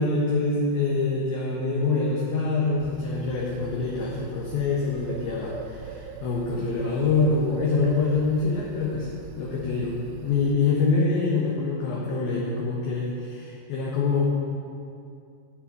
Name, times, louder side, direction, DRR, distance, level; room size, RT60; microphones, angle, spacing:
voice 1, 0.0-9.1 9.4-14.2, left 3 dB, 65° left, -3 dB, 2.7 m, -25 dB
Bird, 2.8-10.5, right 6 dB, 80° right, 2.6 m, -42 dB
11.5 x 7.9 x 8.7 m, 2.4 s
omnidirectional pair, 5.5 m